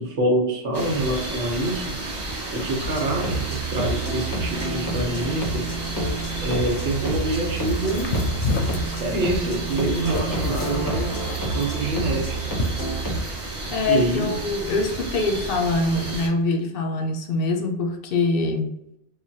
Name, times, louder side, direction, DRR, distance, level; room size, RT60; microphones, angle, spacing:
voice 1, 0.0-1.9 2.5-5.7 6.4-8.1 8.8-11.1 11.5-12.4 13.9-14.4, right 1 dB, 80° right, 1 dB, 1.1 m, -26 dB
sound 1, 0.7-16.3, right 2 dB, 30° right, 0.6 m, -32 dB
sound 2, 2.8-13.2, right 2 dB, 25° left, 0.4 m, -29 dB
sound 3, 7.6-13.4, left 3 dB, 90° left, 0.9 m, -30 dB
voice 2, 13.7-18.8, left 3 dB, 65° left, 4 dB, 0.7 m, -24 dB
3.2 x 2.2 x 2.6 m, 0.81 s
omnidirectional pair, 1.1 m